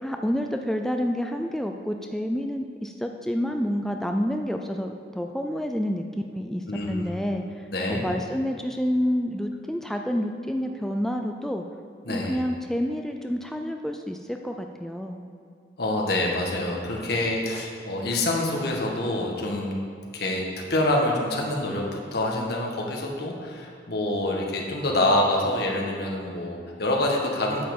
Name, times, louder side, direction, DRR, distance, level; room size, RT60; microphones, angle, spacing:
voice 1, 0.0-6.1 6.3-7.6 7.9-11.6 12.1-15.2, equal, ahead, 4 dB, 0.4 m, -28 dB
voice 2, 6.7-7.1 7.7-8.0 12.0-12.4 15.8-19.8 20.1-20.4 20.7-21.8 22.1-27.7, left 1 dB, 65° left, -1 dB, 1.5 m, -26 dB
9.7 x 5.3 x 7.1 m, 2.4 s
head